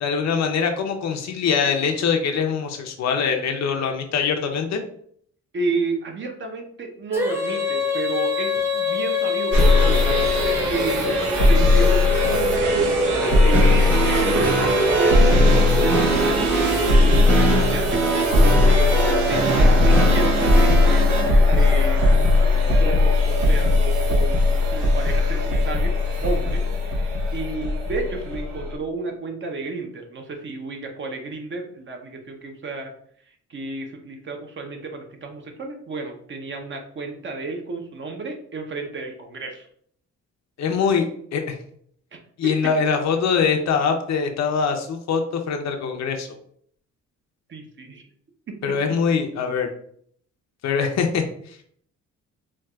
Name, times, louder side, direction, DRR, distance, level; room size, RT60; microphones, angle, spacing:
voice 1, 0.0-4.8 40.6-41.1 41.3-41.6 42.4-46.3 48.6-49.7 50.6-51.6, left 6 dB, 60° left, 4 dB, 0.6 m, -23 dB
voice 2, 5.5-11.1 11.5-15.4 15.8-18.0 18.4-22.1 22.8-24.4 24.7-25.9 26.2-32.9 33.5-39.7 42.1-42.5 47.5-48.0 48.5-49.0, right 3 dB, 40° right, 3 dB, 0.7 m, -32 dB
Female singing, 7.1-16.3, left 4 dB, 10° right, 0.6 m, -25 dB
sound 1, 9.5-28.8, left 2 dB, 80° right, 1.0 m, -19 dB
sound 2, 13.5-21.3, right 4 dB, 65° right, 1.3 m, -23 dB
4.5 x 2.4 x 2.3 m, 0.63 s
cardioid pair, 90°, 30 cm